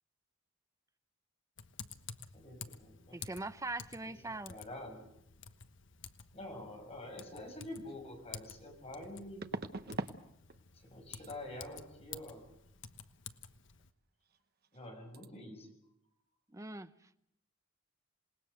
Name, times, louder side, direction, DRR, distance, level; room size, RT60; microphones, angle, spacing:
Typing, 1.6-13.9, left 6 dB, 65° left, 1.2 m, -52 dB
voice 1, 2.3-3.2 4.5-5.1 6.3-9.5 10.8-12.4 14.7-15.7, left 1 dB, 30° left, 3 dB, 6.0 m, -47 dB
voice 2, 3.1-4.5 16.5-16.9, right 2 dB, 15° right, 11 dB, 0.8 m, -41 dB
sound 1, 7.9-8.0 9.4-10.2 10.5-10.9 11.1-11.3 14.3-14.4 14.6-14.9 15.1-15.3, right 3 dB, 50° right, 1.0 m, -41 dB
27.5 x 19.5 x 6.7 m, 0.78 s
head